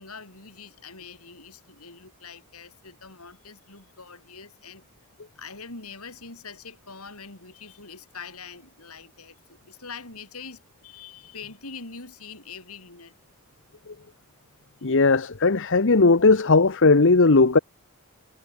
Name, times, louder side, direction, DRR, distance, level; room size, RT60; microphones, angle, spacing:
voice 1, 0.0-4.9 5.4-13.1, left 5 dB, 75° left, 7.5 m, -43 dB
voice 2, 14.8-17.6, left 3 dB, 55° left, 1.0 m, -17 dB
head